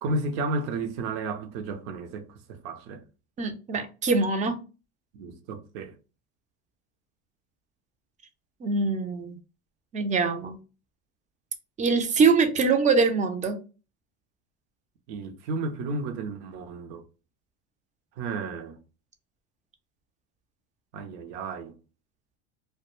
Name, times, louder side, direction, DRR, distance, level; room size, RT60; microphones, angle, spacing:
voice 1, 0.0-3.0 5.1-5.9 15.1-17.0 18.2-18.8 20.9-21.8, right 3 dB, 70° right, 0.7 m, -33 dB
voice 2, 3.4-4.6 8.6-9.4 9.9-10.6 11.8-13.6, right 4 dB, 20° right, 0.4 m, -23 dB
2.2 x 2.1 x 3.0 m
supercardioid pair, 110°, 35 cm